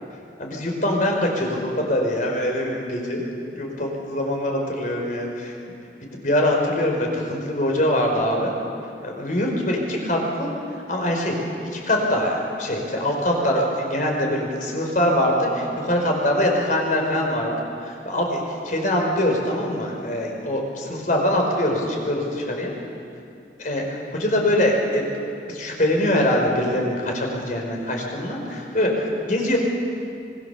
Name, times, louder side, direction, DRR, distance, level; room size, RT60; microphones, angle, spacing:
voice 1, 0.4-3.2 3.5-5.7 6.0-8.5 9.0-10.5 10.9-22.7 23.6-25.1 25.5-29.6, left 1 dB, 45° left, 0 dB, 4.8 m, -23 dB
25.0 x 21.5 x 7.0 m, 2.6 s
head